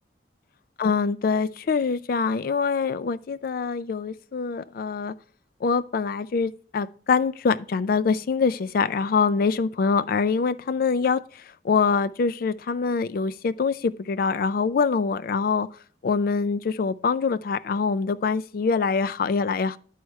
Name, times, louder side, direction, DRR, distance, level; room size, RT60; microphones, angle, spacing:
voice 1, 0.8-5.1 5.6-11.2 11.6-15.7 16.0-19.8, left 5 dB, 55° left, 0.4 m, -24 dB
11.0 x 4.6 x 3.1 m
head